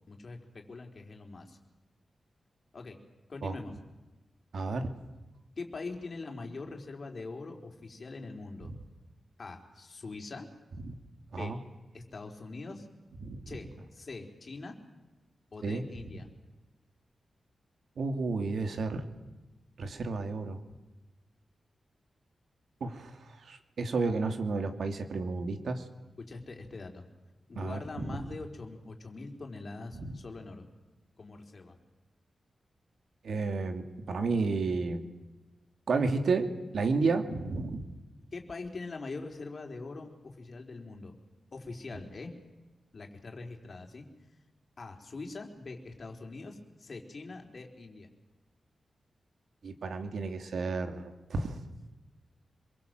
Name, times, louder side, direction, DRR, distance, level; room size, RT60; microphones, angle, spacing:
voice 1, 0.1-1.6 2.7-3.0 3.3-3.8 5.6-8.7 9.4-10.5 11.3-11.5 11.9-12.9 13.5-14.8 15.5-16.3 26.3-27.0 27.5-30.7 31.2-31.8 38.3-41.1 41.5-42.3 42.9-44.1 44.8-48.1, left 3 dB, 45° left, 3 dB, 4.2 m, -43 dB
voice 2, 4.5-4.9 10.8-10.9 11.3-11.6 13.2-13.4 15.6-15.8 18.0-19.1 19.8-20.6 22.8-23.1 23.5-25.8 27.6-28.2 30.0-30.2 33.2-35.0 35.9-37.9 49.6-51.6, right 3 dB, 75° right, 7 dB, 2.6 m, -31 dB
26.5 x 23.5 x 7.8 m, 1.1 s
wide cardioid pair, 130°, 0 cm